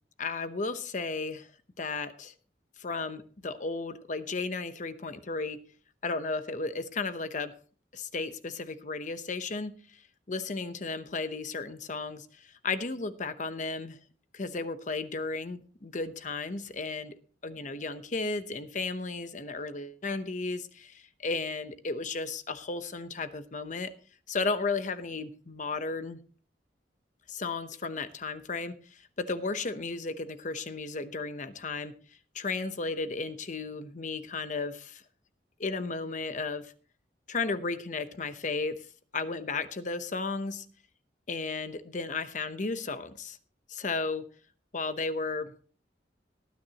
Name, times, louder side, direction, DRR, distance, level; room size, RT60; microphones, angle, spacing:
voice 1, 0.2-1.5 1.8-2.3 2.8-5.6 6.0-7.5 7.9-10.0 10.3-14.0 14.3-17.2 17.4-23.9 24.3-26.2 27.3-31.9 32.3-35.0 35.6-36.7 37.3-38.7 39.1-40.7 41.3-43.4 43.7-44.2 44.7-45.5, left 3 dB, 45° left, 11 dB, 0.8 m, -34 dB
19.0 x 9.4 x 2.9 m, 0.41 s
head